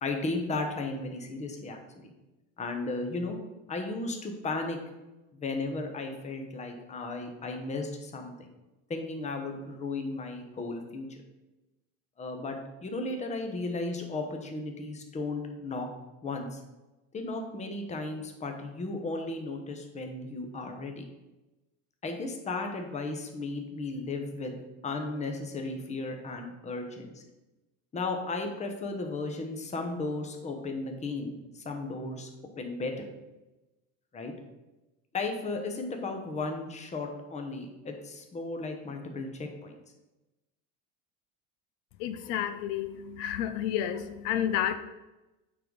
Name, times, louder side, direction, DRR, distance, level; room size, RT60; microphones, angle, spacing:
voice 1, 0.0-2.1 2.6-3.4 3.7-4.8 5.3-8.5 8.9-11.2 12.2-15.9 16.2-16.6 17.1-21.0 22.0-27.2 27.9-32.3 32.6-33.1 34.1-34.3 35.1-39.8, left 3 dB, 20° left, 4 dB, 0.9 m, -35 dB
voice 2, 42.0-44.8, left 10 dB, 75° left, 10 dB, 0.7 m, -30 dB
8.7 x 4.0 x 4.7 m, 1.0 s
cardioid pair, 150°, 39 cm